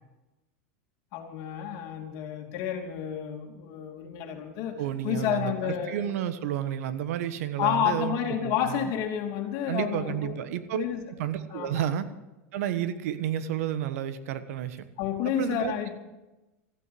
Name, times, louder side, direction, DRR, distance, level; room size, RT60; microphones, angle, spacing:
voice 1, 1.1-6.0 7.6-10.4 10.7-11.0 11.5-11.8 15.0-15.9, left 9 dB, 50° left, 3 dB, 2.9 m, -30 dB
voice 2, 4.8-8.9 9.6-10.8 11.2-12.1 12.5-14.8 15.2-15.7, right 10 dB, 75° right, 12 dB, 1.3 m, -31 dB
14.5 x 9.8 x 7.8 m, 1.0 s
supercardioid pair, 135°, 8 cm